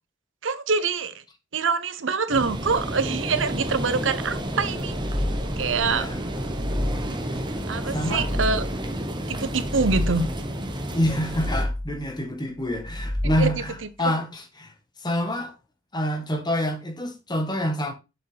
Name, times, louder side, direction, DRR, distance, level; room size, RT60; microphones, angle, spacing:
voice 1, 0.4-1.1 1.5-4.9 5.6-6.1 7.7-8.6 9.3-10.3 13.4-13.5, right 4 dB, 75° right, 0.8 m, -25 dB
sound 1, 2.3-11.6, right 1 dB, 25° right, 1.1 m, -31 dB
sound 2, 4.7-5.8 6.2-7.4 7.8-8.9 9.4-10.5 11.0-12.1 12.7-13.8, left 1 dB, ahead, 0.9 m, -30 dB
voice 2, 5.8-6.2 7.3-7.4 7.9-8.3 10.9-15.5 15.9-17.9, equal, 20° left, 1.4 m, -27 dB
6.9 x 6.2 x 3.4 m
head